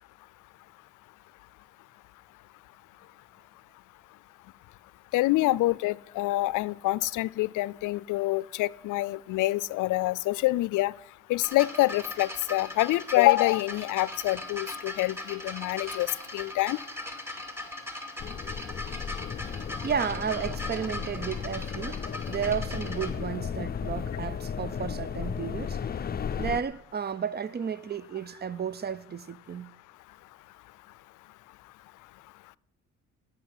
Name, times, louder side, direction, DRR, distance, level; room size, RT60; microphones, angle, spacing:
voice 1, 5.1-10.9 11.3-16.8, left 18 dB, 85° left, 0.5 m, -26 dB
sound 1, 11.4-23.1 24.0-24.1, left 1 dB, 10° right, 2.6 m, -39 dB
sound 2, 18.2-26.6, left 7 dB, 30° left, 0.6 m, -34 dB
voice 2, 19.8-22.0 22.3-25.8 26.4-29.7, right 7 dB, 35° right, 0.5 m, -33 dB
16.0 x 6.1 x 9.7 m
cardioid pair, 90°, 30 cm